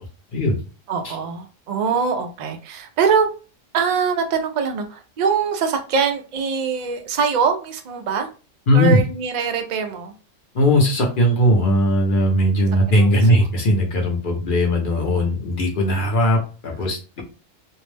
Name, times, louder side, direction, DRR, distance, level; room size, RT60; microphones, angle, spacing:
voice 1, 0.9-3.3 3.7-8.3 8.7-10.1 12.9-13.1, right 6 dB, 70° right, 5 dB, 0.4 m, -23 dB
voice 2, 8.7-9.0 10.5-17.2, equal, 50° left, 0 dB, 0.8 m, -18 dB
2.6 x 2.0 x 3.2 m, 0.35 s
omnidirectional pair, 1.3 m